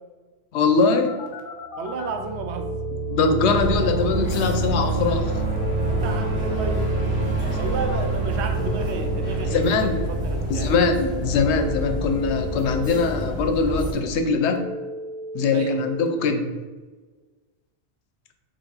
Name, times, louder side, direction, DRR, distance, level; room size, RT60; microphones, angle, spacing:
voice 1, 0.5-1.1 3.1-5.4 9.4-10.0 10.5-14.6 15.3-16.5, left 4 dB, 85° left, 7 dB, 0.9 m, -22 dB
Telephone, 1.1-2.1 2.6-4.1 5.6-7.1 8.5-10.1 11.5-13.1 14.6-16.1, equal, 50° left, 0.8 m, -35 dB
sound 1, 1.8-12.6, right 3 dB, 65° right, 1.5 m, -28 dB
voice 2, 1.8-2.7 5.8-10.7 15.5-15.8, right 3 dB, 85° right, 5 dB, 0.9 m, -32 dB
sound 2, 3.6-13.9, left 1 dB, 5° right, 1.1 m, -30 dB
4.7 x 2.4 x 3.8 m, 1.3 s
omnidirectional pair, 1.1 m